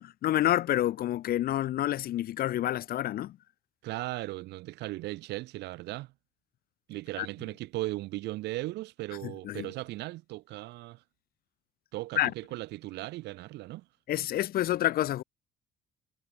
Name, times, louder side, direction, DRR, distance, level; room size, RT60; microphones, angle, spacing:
voice 1, 0.0-3.4 7.2-7.3 9.2-9.7 12.2-12.3 14.1-15.2, left 13 dB, 60° left, 1.0 m, -28 dB
voice 2, 3.8-6.1 6.9-11.0 11.9-13.9, right 18 dB, 85° right, 3.8 m, -37 dB
cardioid pair, 110°, 17 cm